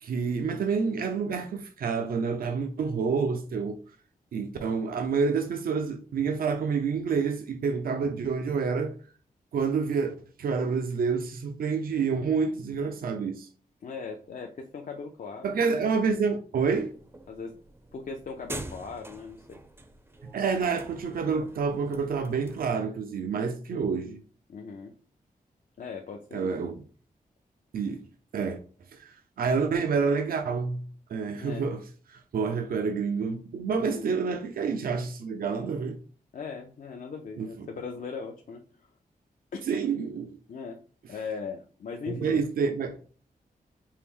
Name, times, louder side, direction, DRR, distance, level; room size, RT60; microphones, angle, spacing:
voice 1, 0.0-3.8 4.3-8.9 9.5-13.5 15.4-16.9 20.3-24.2 26.3-26.8 27.7-28.0 28.3-28.6 28.9-30.8 31.1-31.8 32.1-36.0 37.4-37.5 39.7-40.3 42.1-42.9, right 5 dB, 75° right, 0.5 m, -28 dB
voice 2, 13.8-15.6 17.3-17.5 17.9-19.6 24.5-24.9 25.8-26.5 31.4-31.7 33.9-34.1 36.3-38.6 39.5-39.6 40.5-40.8 41.1-42.4, left 5 dB, 60° left, 0.5 m, -39 dB
sound 1, 16.7-22.7, right 2 dB, 15° right, 0.4 m, -45 dB
4.5 x 2.0 x 3.5 m
wide cardioid pair, 115°, 15 cm